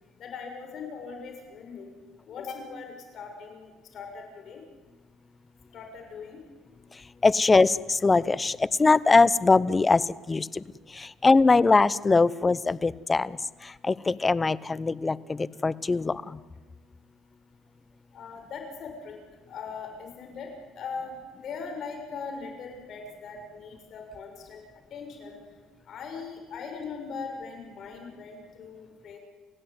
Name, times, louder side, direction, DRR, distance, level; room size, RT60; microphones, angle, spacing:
voice 1, 0.2-1.9 2.3-4.6 5.7-6.4 18.1-19.2 19.5-24.6 24.9-25.4 25.9-29.2, left 5 dB, 50° left, 3 dB, 6.6 m, -40 dB
voice 2, 7.2-10.6 10.9-13.4 13.6-16.4, left 3 dB, 20° left, 19 dB, 0.8 m, -22 dB
29.5 x 16.0 x 9.5 m, 1.3 s
cardioid pair, 115°, 0 cm